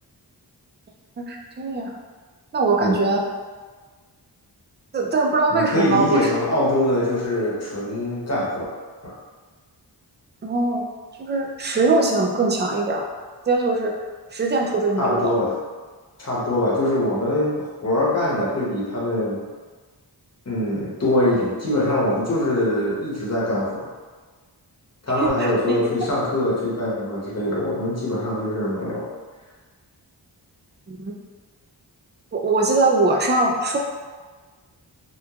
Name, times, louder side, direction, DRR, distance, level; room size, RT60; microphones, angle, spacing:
voice 1, 1.2-1.9 2.5-3.2 4.9-6.3 10.4-10.9 11.2-13.0 13.5-14.0 14.3-15.3 25.2-25.8 30.9-31.1 32.3-33.8, right 3 dB, 25° right, 1 dB, 0.4 m, -21 dB
voice 2, 5.5-8.6 9.0-9.1 15.0-15.5 16.2-19.4 20.4-23.9 25.0-29.1, left 1 dB, 35° left, -6 dB, 1.0 m, -23 dB
3.1 x 2.2 x 2.4 m, 1.4 s
cardioid pair, 50°, 42 cm